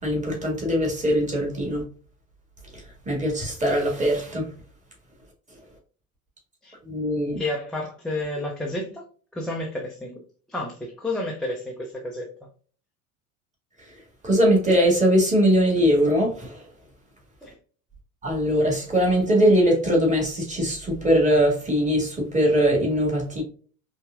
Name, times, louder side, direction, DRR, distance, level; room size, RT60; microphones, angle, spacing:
voice 1, 0.0-1.8 3.1-4.5 6.8-7.4 14.2-16.6 18.2-23.4, equal, 15° right, 1.9 m, -21 dB
voice 2, 7.4-9.0 9.3-10.2 10.5-12.3 17.4-17.5, left 2 dB, ahead, 0.5 m, -31 dB
5.3 x 2.4 x 2.3 m
figure-of-eight pair, 75°, 43 cm